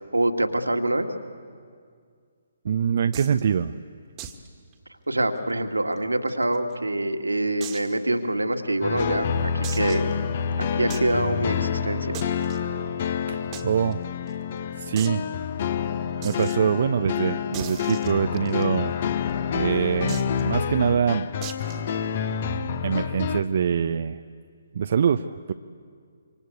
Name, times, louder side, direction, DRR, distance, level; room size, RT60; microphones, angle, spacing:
voice 1, 0.1-1.1 5.1-10.0 10.6-12.2, right 1 dB, 75° right, 5 dB, 2.1 m, -25 dB
voice 2, 2.6-3.7 13.3-14.0 14.8-15.3 16.2-18.9 19.5-21.3 22.8-24.2 24.7-25.5, right 7 dB, 45° right, 10 dB, 0.7 m, -24 dB
sound 1, 3.1-3.4 4.2-4.5 4.7-4.8 5.2-5.3 6.0-6.7 7.6-8.0 8.5-8.6 9.6-10.1 10.9-11.1 12.1-12.6 13.5-13.6 13.9-14.0 14.3-14.4 15.0-15.2 16.2-16.6 17.5-18.6 20.1-20.4 21.4-21.8, right 9 dB, 20° right, 1.8 m, -38 dB
sound 2, 8.8-23.4, left 7 dB, 40° left, 1.2 m, -28 dB
26.5 x 25.0 x 8.2 m, 2.1 s
figure-of-eight pair, 135°, 0 cm